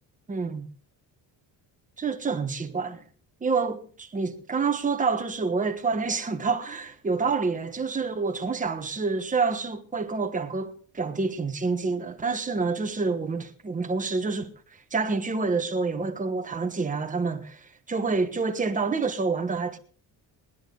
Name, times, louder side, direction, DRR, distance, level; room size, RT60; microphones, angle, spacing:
voice 1, 0.3-0.7 2.0-3.0 3.4-14.5 14.9-19.8, right 4 dB, 20° right, 1.3 m, -28 dB
21.0 x 10.5 x 3.9 m
cardioid pair, 175°, 42 cm